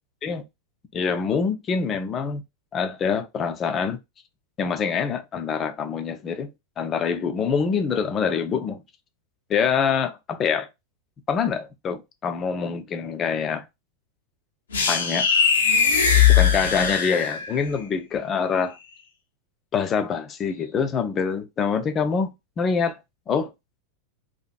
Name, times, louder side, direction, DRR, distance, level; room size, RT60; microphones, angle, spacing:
voice 1, 0.9-2.4 2.7-4.0 4.6-6.5 6.8-8.8 9.5-10.7 11.3-13.7 14.9-15.3 16.3-18.8 19.7-23.0 23.3-23.5, left 6 dB, 25° left, 0.5 m, -25 dB
sound 1, 14.7-17.6, left 7 dB, 70° left, 0.7 m, -19 dB
2.7 x 2.5 x 2.4 m
figure-of-eight pair, 90°, 0 cm